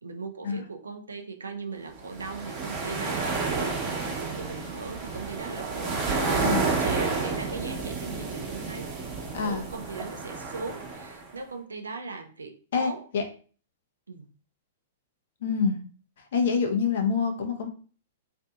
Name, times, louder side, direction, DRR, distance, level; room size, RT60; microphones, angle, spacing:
voice 1, 0.0-8.9 9.4-13.1 14.1-14.3, right 4 dB, 90° right, 6 dB, 0.4 m, -39 dB
sound 1, 2.0-11.3, right 4 dB, 30° right, 0.8 m, -30 dB
voice 2, 6.4-6.8 9.3-9.7 12.7-13.2 15.4-15.8 16.3-17.7, left 5 dB, 65° left, 4 dB, 0.6 m, -26 dB
2.6 x 2.5 x 2.3 m, 0.41 s
hypercardioid pair, 115°, 0 cm